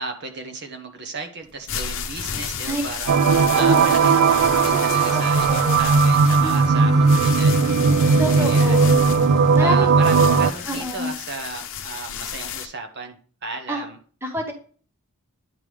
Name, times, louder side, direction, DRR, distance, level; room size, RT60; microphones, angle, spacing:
voice 1, 0.0-3.1 3.5-7.6 8.3-8.8 9.6-13.2 13.4-14.0, right 3 dB, 50° right, 5 dB, 1.2 m, -34 dB
sound 1, 1.5-12.7, left 8 dB, 60° left, 0.8 m, -33 dB
sound 2, 3.1-10.5, right 4 dB, 70° right, 0.4 m, -17 dB
voice 2, 3.6-3.9 4.7-5.8 6.4-7.0 8.2-8.9 9.5-10.0 10.7-11.1 13.7-13.9 14.2-14.5, equal, 10° right, 3 dB, 1.0 m, -28 dB
sound 3, 4.0-11.0, left 3 dB, 30° left, 1.9 m, -43 dB
9.6 x 3.7 x 4.8 m, 0.42 s
head